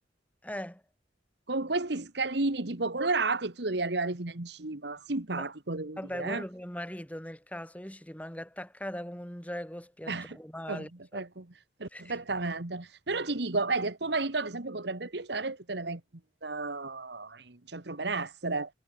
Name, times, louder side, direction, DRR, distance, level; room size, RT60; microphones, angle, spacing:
voice 1, 0.4-0.8 5.4-5.5 6.0-11.2 11.9-12.2, equal, 10° left, 6.4 m, -40 dB
voice 2, 1.5-6.4 10.1-10.4 10.7-10.9 11.1-11.5 11.8-16.0 16.4-18.7, right 3 dB, 65° right, 1.6 m, -32 dB
head